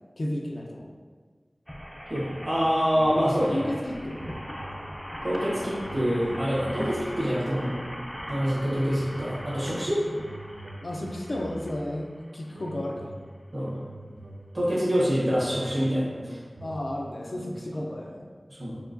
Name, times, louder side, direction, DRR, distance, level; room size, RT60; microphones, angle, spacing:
voice 1, 0.2-0.9 3.5-4.2 10.1-10.2 10.8-13.1 16.6-18.3, left 1 dB, 75° left, 0 dB, 0.4 m, -33 dB
sound 1, 1.7-12.8 13.4-13.5 13.7-13.8, equal, 10° left, 0.4 m, -40 dB
voice 2, 2.1-3.6 5.2-7.7 8.3-10.0 13.5-13.7 14.5-16.4 18.6-18.8, equal, 50° right, -8 dB, 1.3 m, -26 dB
sound 2, 2.9-3.8 4.1-7.2 7.7-8.6 8.9-12.0 12.5-17.9, right 1 dB, 70° right, 0.4 m, -45 dB
4.4 x 2.2 x 2.5 m, 1.5 s
wide cardioid pair, 55°, 0 cm